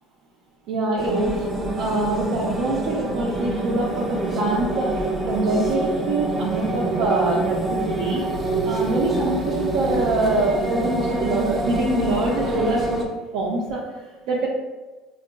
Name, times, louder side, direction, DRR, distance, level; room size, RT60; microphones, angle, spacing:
voice 1, 0.7-1.5 1.8-8.2 8.6-12.8 13.3-14.5, right 2 dB, 65° right, -5 dB, 0.5 m, -25 dB
sound 1, 1.0-13.0, right 2 dB, 15° right, 0.5 m, -26 dB
3.6 x 2.3 x 2.3 m, 1.2 s
cardioid pair, 130°, 0 cm